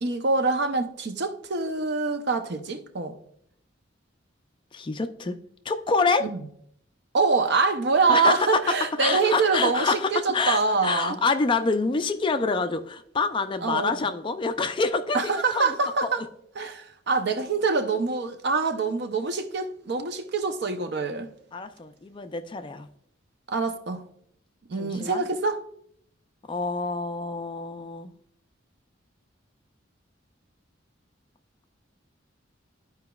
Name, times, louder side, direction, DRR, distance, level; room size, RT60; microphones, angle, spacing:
voice 1, 0.0-3.2 6.2-6.4 7.1-11.2 13.6-14.0 15.1-16.2 16.6-21.3 23.5-24.0 24.7-25.6, right 4 dB, 60° right, 0.6 m, -25 dB
voice 2, 4.7-5.4 5.7-6.3 8.1-8.6 9.0-15.2 15.5-15.8 21.5-22.9 24.8-25.2 26.5-28.1, left 4 dB, 25° left, 0.4 m, -26 dB
12.0 x 4.7 x 2.3 m
head